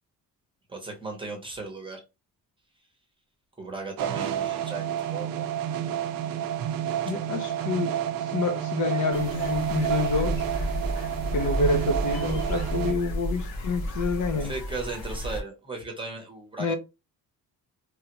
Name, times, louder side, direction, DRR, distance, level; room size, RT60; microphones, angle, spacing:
voice 1, 0.7-2.0 3.6-5.3 14.4-16.8, right 3 dB, 15° right, 0.8 m, -36 dB
sound 1, 4.0-12.9, right 10 dB, 70° right, 0.5 m, -30 dB
voice 2, 7.0-10.5 11.3-14.5 16.6-16.8, left 3 dB, 55° left, 0.7 m, -28 dB
sound 2, 9.1-15.4, equal, 75° left, 1.2 m, -32 dB
3.2 x 2.4 x 2.9 m
wide cardioid pair, 170°, 36 cm